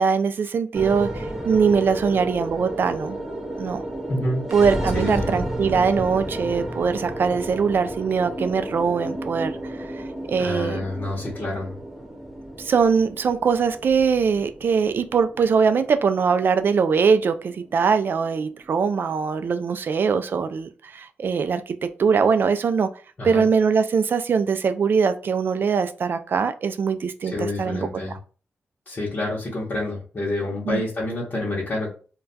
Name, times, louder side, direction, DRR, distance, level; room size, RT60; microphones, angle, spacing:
voice 1, 0.0-3.2 3.6-3.9 4.5-9.9 10.3-10.8 12.6-22.9 23.2-27.9 30.7-30.8, right 5 dB, 55° right, 10 dB, 0.3 m, -22 dB
sound 1, 0.7-19.1, right 1 dB, 5° right, 0.6 m, -32 dB
voice 2, 4.1-4.4 4.9-5.3 10.4-11.7 23.2-23.5 27.2-28.2 28.9-31.9, left 1 dB, 45° left, -6 dB, 0.9 m, -28 dB
2.2 x 2.2 x 3.9 m, 0.38 s
wide cardioid pair, 105°, 4 cm